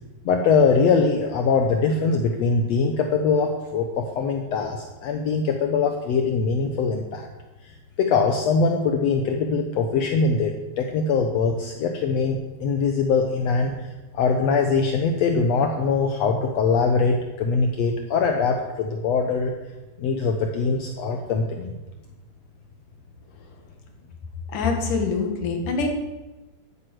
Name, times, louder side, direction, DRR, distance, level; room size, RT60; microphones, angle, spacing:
voice 1, 0.3-7.3 7.6-19.5 20.0-21.7, left 4 dB, 65° left, 4 dB, 2.0 m, -22 dB
voice 2, 24.5-25.9, left 4 dB, 85° left, 3 dB, 3.5 m, -24 dB
14.0 x 9.8 x 6.2 m, 1.1 s
omnidirectional pair, 3.5 m